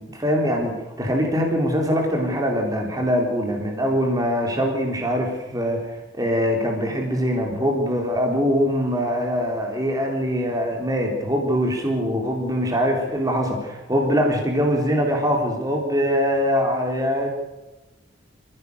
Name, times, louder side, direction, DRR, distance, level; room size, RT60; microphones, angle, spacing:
voice 1, 0.0-5.8 6.1-17.3, equal, 20° right, 1 dB, 3.7 m, -23 dB
27.5 x 16.5 x 6.8 m, 1.0 s
head